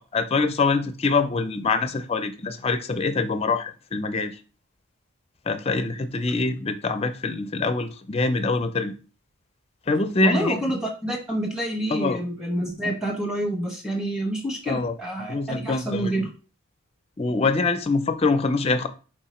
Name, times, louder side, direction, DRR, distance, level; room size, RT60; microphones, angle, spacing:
voice 1, 0.0-4.4 5.5-8.9 9.9-10.6 11.9-12.2 14.7-14.9 15.3-16.2 17.2-18.9, left 3 dB, 25° left, 0.4 m, -24 dB
voice 2, 10.2-16.3, right 1 dB, 5° right, 1.0 m, -28 dB
4.5 x 2.8 x 4.2 m
head